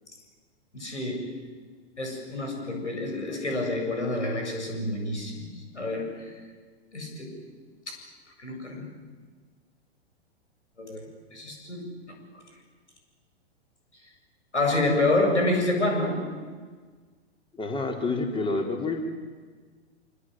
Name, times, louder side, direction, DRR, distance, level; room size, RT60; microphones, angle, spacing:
voice 1, 0.7-1.4 2.0-6.4 6.9-7.4 7.9-8.0 8.4-8.9 10.8-12.4 14.5-16.5, left 2 dB, 85° left, 2 dB, 7.6 m, -28 dB
voice 2, 17.6-19.0, left 3 dB, 15° left, 3 dB, 4.1 m, -28 dB
25.5 x 25.5 x 7.9 m, 1.5 s
figure-of-eight pair, 110°, 34 cm